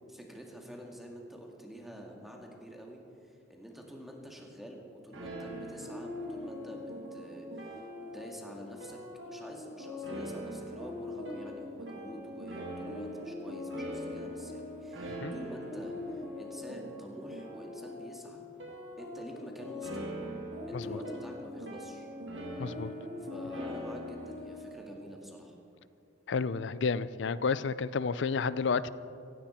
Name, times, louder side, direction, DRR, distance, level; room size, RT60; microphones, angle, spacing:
voice 1, 0.1-18.4 19.0-20.1 20.7-22.1 23.2-25.5, equal, ahead, 0 dB, 2.0 m, -47 dB
sound 1, 5.1-24.7, left 1 dB, 75° right, 2.2 m, -41 dB
voice 2, 22.6-22.9 26.3-28.9, left 5 dB, 70° left, 16 dB, 0.5 m, -31 dB
16.5 x 16.0 x 4.4 m, 2.6 s
head